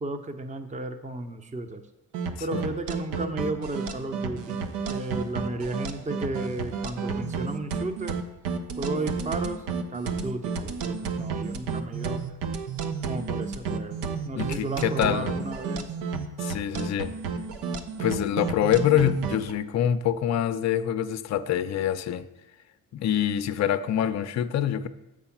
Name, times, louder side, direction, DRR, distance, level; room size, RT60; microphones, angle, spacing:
voice 1, 0.0-1.8 2.4-8.2 8.8-12.3 13.1-16.0, right 2 dB, 20° right, 0.7 m, -34 dB
sound 1, 2.1-19.5, right 5 dB, 75° right, 0.8 m, -31 dB
voice 2, 14.3-15.3 16.4-17.2 18.0-22.3 22.9-24.9, left 10 dB, 40° left, 0.5 m, -25 dB
6.9 x 4.8 x 5.9 m
supercardioid pair, 60°, 41 cm